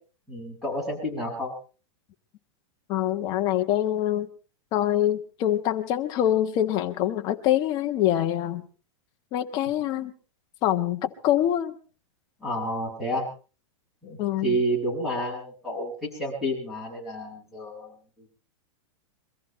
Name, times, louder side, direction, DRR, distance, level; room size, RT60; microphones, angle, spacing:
voice 1, 0.3-1.5 12.4-13.3 14.0-18.0, equal, ahead, -3 dB, 6.9 m, -30 dB
voice 2, 2.9-4.3 4.7-8.6 9.3-10.1 10.6-11.7 14.2-14.6, left 12 dB, 25° left, 6 dB, 1.3 m, -25 dB
24.0 x 14.5 x 4.2 m, 0.37 s
supercardioid pair, 175°, 16 cm